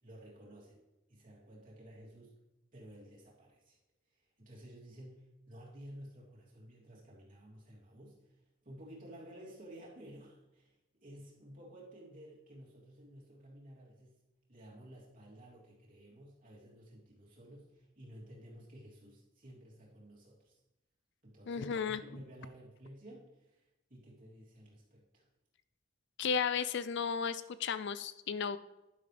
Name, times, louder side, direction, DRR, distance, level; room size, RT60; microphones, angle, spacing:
voice 1, 0.0-0.8 1.1-2.3 2.7-3.8 4.4-8.4 8.6-14.2 14.5-20.6 21.2-23.6 23.9-25.3, right 1 dB, 45° right, -4 dB, 3.0 m, -53 dB
voice 2, 21.5-22.0 26.2-28.6, left 6 dB, 65° left, 14 dB, 0.5 m, -34 dB
11.0 x 10.5 x 3.4 m, 0.94 s
head